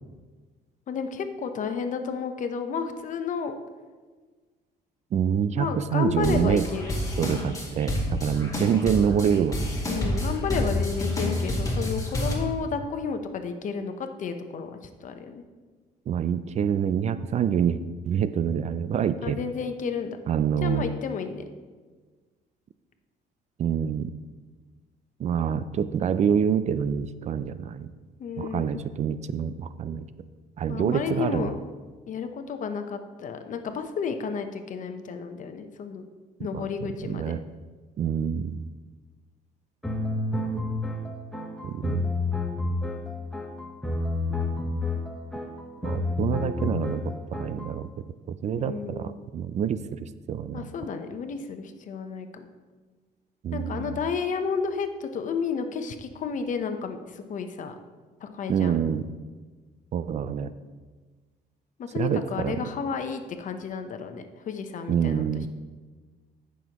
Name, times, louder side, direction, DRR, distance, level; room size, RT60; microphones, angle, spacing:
voice 1, 0.9-3.6 5.6-6.9 9.9-15.4 19.2-20.2 20.6-21.4 28.2-28.8 29.9-30.0 30.7-31.5 32.1-36.1 36.4-37.3 48.5-49.2 50.5-52.4 53.5-57.7 58.2-58.8 61.8-65.3, left 5 dB, 50° left, 7 dB, 0.9 m, -32 dB
voice 2, 5.1-6.6 7.2-9.6 16.1-17.8 18.0-19.4 20.3-20.9 23.6-24.1 25.2-27.9 28.4-30.0 30.6-31.5 36.5-36.7 37.1-37.4 38.0-38.7 41.6-42.1 45.8-47.9 48.3-50.7 53.4-54.0 58.5-59.1 59.9-60.5 61.9-62.6 64.9-65.5, right 8 dB, 45° right, 13 dB, 0.4 m, -26 dB
sound 1, 6.2-12.4, left 1 dB, 20° left, 2.2 m, -28 dB
sound 2, 39.8-47.7, left 2 dB, 5° left, 1.0 m, -30 dB
14.5 x 6.2 x 3.0 m, 1.4 s
cardioid pair, 110°, 17 cm